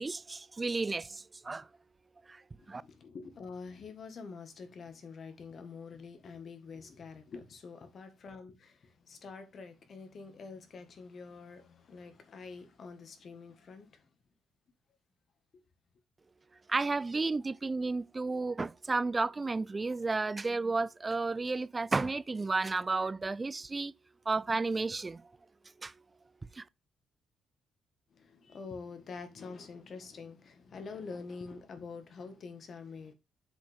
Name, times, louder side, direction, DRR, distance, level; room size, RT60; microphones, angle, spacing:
voice 1, 0.0-1.7 2.3-2.4 2.7-2.8 16.7-23.9 24.3-25.2 25.8-25.9 26.5-26.6, right 3 dB, 25° right, 0.5 m, -32 dB
voice 2, 2.6-14.1 15.5-15.6 28.1-33.1, left 4 dB, 50° left, 1.7 m, -46 dB
7.4 x 5.0 x 3.6 m
cardioid pair, 90°, 0 cm